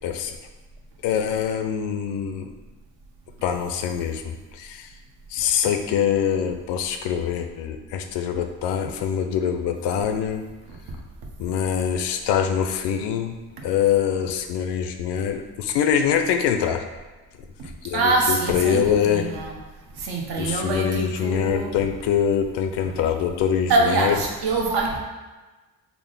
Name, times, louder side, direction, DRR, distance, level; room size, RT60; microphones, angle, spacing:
voice 1, 0.0-0.4 1.0-2.5 3.4-4.9 5.3-10.4 11.4-13.3 13.6-16.8 17.8-19.2 20.4-24.2, left 8 dB, 75° left, 7 dB, 0.5 m, -24 dB
voice 2, 17.6-19.6 19.9-21.7 23.7-25.0, right 3 dB, 60° right, 0 dB, 0.8 m, -24 dB
3.5 x 2.0 x 3.7 m, 1.2 s
cardioid pair, 80°, 43 cm